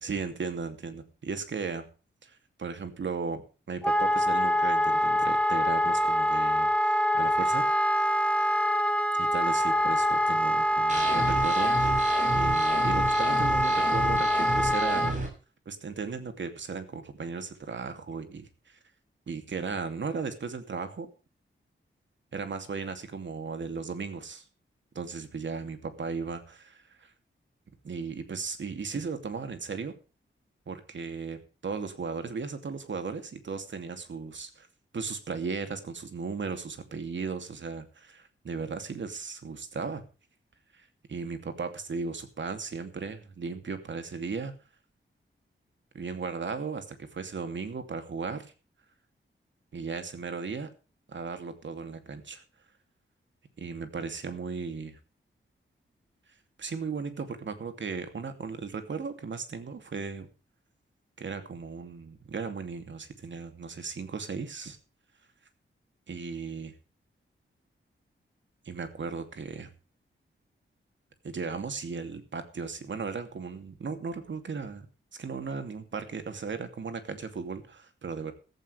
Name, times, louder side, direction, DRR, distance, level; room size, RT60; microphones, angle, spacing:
voice 1, 0.0-1.9 2.2-7.7 9.2-12.0 12.3-15.2 15.7-18.8 19.3-21.1 22.3-24.4 24.9-27.1 27.8-29.9 30.7-34.7 34.9-40.0 40.7-44.5 45.9-48.5 49.7-50.7 51.1-52.4 53.6-55.0 56.6-60.3 61.2-64.8 66.1-66.7 68.6-69.7 71.2-74.9 75.2-78.3, right 5 dB, 65° right, 8 dB, 2.7 m, -36 dB
Wind instrument woodwind instrument, 3.8-15.1, equal, 5° left, 1.4 m, -25 dB
sound 1, 10.9-15.3, right 2 dB, 35° right, 7.2 m, -32 dB
15.0 x 15.0 x 3.4 m, 0.35 s
wide cardioid pair, 130°, 21 cm